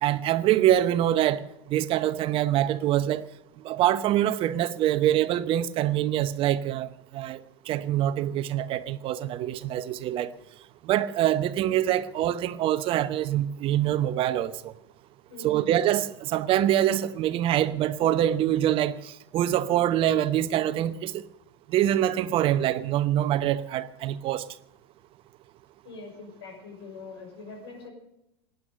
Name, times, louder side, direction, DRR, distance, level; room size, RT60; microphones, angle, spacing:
voice 1, 0.0-1.4 1.7-3.3 3.6-10.3 10.8-14.7 15.4-21.2 21.7-24.5, right 12 dB, 40° right, 0.8 m, -25 dB
voice 2, 15.3-15.7 25.8-27.9, left 3 dB, 75° left, 5.8 m, -43 dB
18.5 x 10.5 x 6.8 m
figure-of-eight pair, 85°, 14 cm